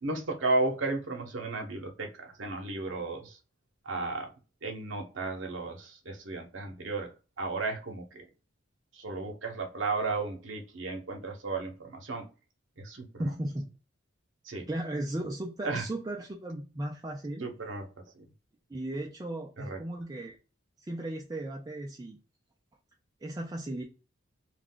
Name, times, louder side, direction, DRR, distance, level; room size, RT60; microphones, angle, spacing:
voice 1, 0.0-3.4 3.8-4.3 4.6-7.1 7.4-8.3 8.9-12.3 12.8-13.3 14.5-14.7 15.6-15.8 17.4-17.9 18.1-18.2 19.6-19.8, right 3 dB, 70° right, 0.8 m, -34 dB
voice 2, 13.2-13.7 14.7-17.5 18.7-20.4 20.8-22.2 23.2-23.8, right 1 dB, 20° right, 0.3 m, -36 dB
2.3 x 2.2 x 3.7 m
head